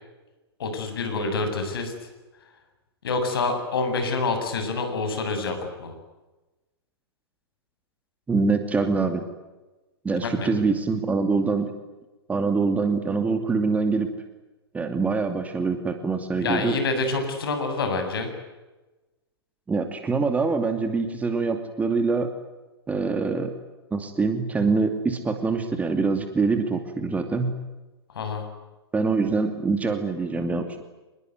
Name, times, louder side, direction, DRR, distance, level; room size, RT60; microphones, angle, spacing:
voice 1, 0.6-1.9 3.0-5.9 10.2-10.5 16.4-18.3 28.1-28.5, left 3 dB, 60° left, 6 dB, 7.5 m, -27 dB
voice 2, 8.3-9.2 10.0-11.7 12.3-14.1 14.7-16.7 19.7-22.3 22.9-23.5 23.9-27.5 28.9-30.8, right 4 dB, 10° right, 7 dB, 2.6 m, -24 dB
27.0 x 21.0 x 9.5 m, 1.1 s
figure-of-eight pair, 110°, 14 cm